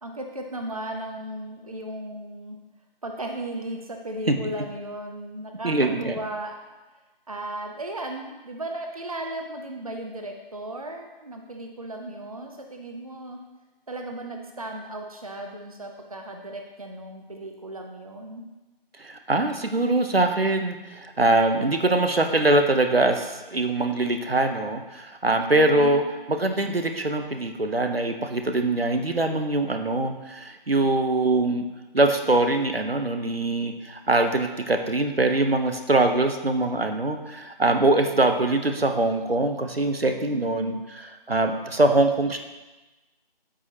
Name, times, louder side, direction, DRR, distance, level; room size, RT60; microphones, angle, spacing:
voice 1, 0.0-2.6 3.0-6.7 7.3-13.4 13.9-18.5 40.3-40.8, right 1 dB, 40° right, 3 dB, 0.7 m, -36 dB
voice 2, 5.6-6.1 19.0-26.0 26.3-31.7 31.9-42.4, right 2 dB, 85° right, 6 dB, 1.0 m, -23 dB
13.5 x 5.0 x 2.9 m, 1.1 s
figure-of-eight pair, 165°, 29 cm